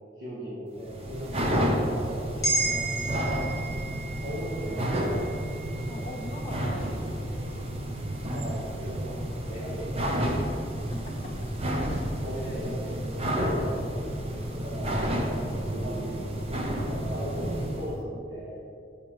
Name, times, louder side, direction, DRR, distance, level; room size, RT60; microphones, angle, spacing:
voice 1, 0.0-3.5 4.2-5.3 8.3-9.1 9.4-10.4 12.2-14.1 14.5-18.6, equal, 80° right, -7 dB, 1.1 m, -38 dB
sound 1, 0.8-17.9, equal, 35° right, 0.6 m, -31 dB
sound 2, 2.4-6.9 7.3-7.5, right 2 dB, 20° left, 1.2 m, -33 dB
voice 2, 5.8-7.7 11.2-11.3 12.3-12.6, left 1 dB, 40° left, -5 dB, 1.3 m, -41 dB
6.9 x 5.1 x 3.0 m, 2.5 s
head